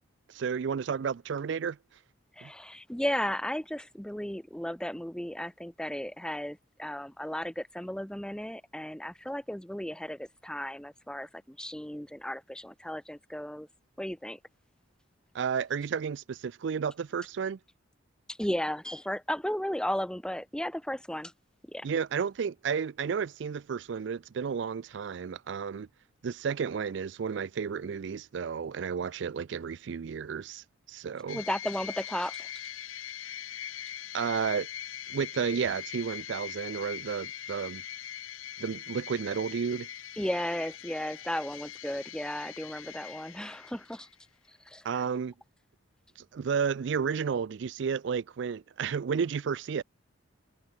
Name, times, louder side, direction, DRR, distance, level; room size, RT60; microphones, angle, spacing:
voice 1, 0.3-1.8 2.4-2.5 15.3-17.6 21.8-25.9 26.2-31.4 34.1-34.7 35.1-37.8 38.6-39.9 44.8-45.3 46.3-49.8, right 6 dB, 60° right, 0.4 m, -32 dB
voice 2, 2.4-13.7 14.0-14.4 18.3-21.3 21.7-21.9 31.3-32.5 40.2-44.1 44.7-45.0, left 1 dB, 5° left, 0.7 m, -35 dB
sound 1, 31.3-44.1, left 11 dB, 85° left, 1.0 m, -42 dB
head